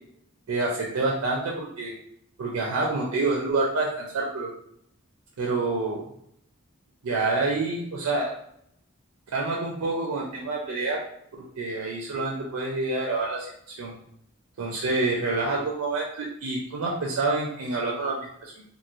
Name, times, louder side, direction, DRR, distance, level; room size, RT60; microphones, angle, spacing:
voice 1, 0.5-1.9 2.4-4.5 5.4-6.0 7.0-8.3 9.3-11.0 11.6-13.5 13.8-13.9 14.6-18.6, right 3 dB, 90° right, -2 dB, 0.4 m, -27 dB
3.0 x 2.5 x 2.5 m, 0.72 s
head